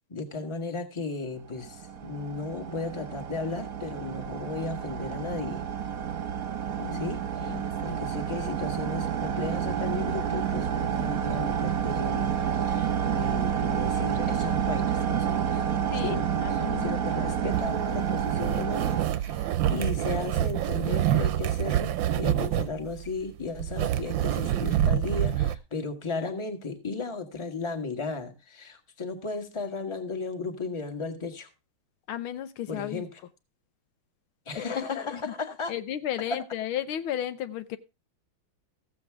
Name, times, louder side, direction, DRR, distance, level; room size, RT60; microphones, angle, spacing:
voice 1, 0.1-5.6 6.9-15.6 15.9-31.5 32.7-33.1 34.4-35.7 36.3-36.4, left 3 dB, 15° left, 5 dB, 1.4 m, -35 dB
sound 1, 1.5-19.1, right 8 dB, 50° right, 1.3 m, -29 dB
voice 2, 6.8-8.0 15.9-17.6 32.1-33.0 34.7-35.3 35.7-37.8, left 11 dB, 80° left, 11 dB, 1.6 m, -35 dB
sound 2, 17.5-25.6, right 11 dB, 70° right, 1.4 m, -27 dB
15.0 x 7.9 x 3.5 m, 0.27 s
omnidirectional pair, 2.3 m